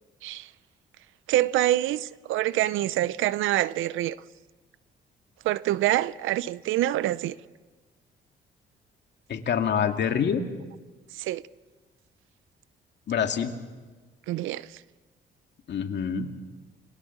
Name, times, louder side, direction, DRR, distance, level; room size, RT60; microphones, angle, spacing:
voice 1, 1.3-4.2 5.4-7.4 11.1-11.4 14.3-14.8, right 14 dB, 90° right, 0.7 m, -26 dB
voice 2, 9.3-10.4 13.1-13.5 15.7-16.3, left 7 dB, 60° left, 2.4 m, -26 dB
29.5 x 22.5 x 7.3 m
cardioid pair, 90°, 20 cm